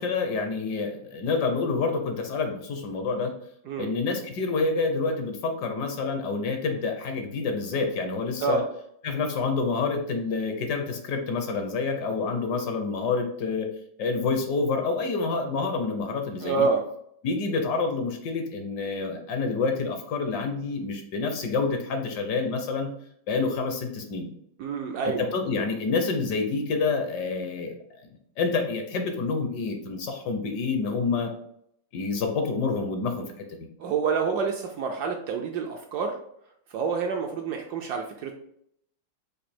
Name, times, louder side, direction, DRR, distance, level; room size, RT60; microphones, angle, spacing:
voice 1, 0.0-3.3 3.8-8.6 9.0-13.7 14.0-16.7 17.2-22.9 23.3-24.3 25.0-27.8 28.4-31.3 31.9-33.3, left 4 dB, 70° left, 5 dB, 1.2 m, -28 dB
voice 2, 16.4-16.8 24.6-25.3 33.8-36.2 36.7-38.3, right 5 dB, 75° right, 2 dB, 1.0 m, -27 dB
5.1 x 2.4 x 4.2 m, 0.71 s
omnidirectional pair, 2.1 m